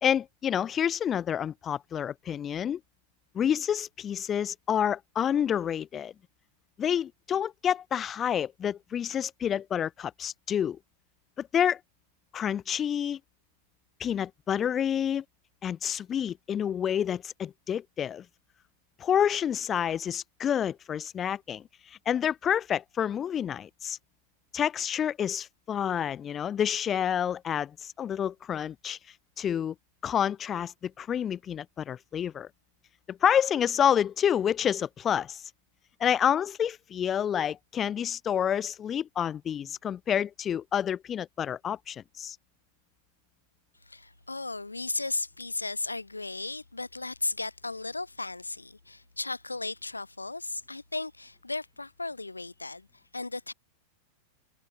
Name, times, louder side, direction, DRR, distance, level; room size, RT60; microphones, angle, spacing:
voice 1, 0.0-2.8 3.3-6.1 6.8-10.8 11.4-11.8 12.3-13.2 14.0-15.2 15.6-18.2 19.0-24.0 24.5-29.0 29.4-29.7 30.0-32.5 33.1-35.5 36.0-42.4, left 9 dB, 25° left, 3.3 m, -28 dB
voice 2, 43.9-52.9 53.1-53.5, left 3 dB, 80° left, 6.7 m, -35 dB
figure-of-eight pair, 90°, 0 cm